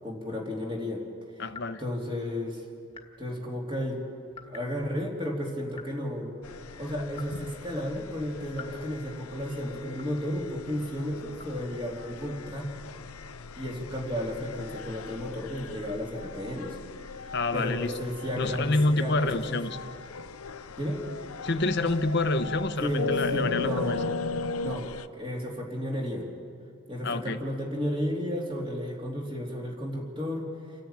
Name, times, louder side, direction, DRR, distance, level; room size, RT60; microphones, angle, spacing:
voice 1, 0.0-1.0 1.3-1.4 1.8-2.6 3.2-4.0 4.4-6.3 6.8-12.7 13.6-16.8 17.2-19.8 20.8-21.0 22.8-24.1 24.6-24.9 25.2-26.3 26.9-30.5, equal, 25° right, -1 dB, 3.0 m, -33 dB
voice 2, 1.4-1.8 17.3-17.9 18.4-19.8 21.4-24.0 27.0-27.4, left 2 dB, 50° left, 9 dB, 0.9 m, -27 dB
sound 1, 1.5-1.7 2.9-3.2 4.3-4.7 5.7-6.0 7.1-7.5 8.5-8.8 9.9-10.3 11.3-11.6, left 6 dB, 25° left, 1.6 m, -47 dB
sound 2, 6.4-25.1, left 4 dB, 80° left, 0.6 m, -38 dB
29.5 x 10.5 x 8.9 m, 2.3 s
head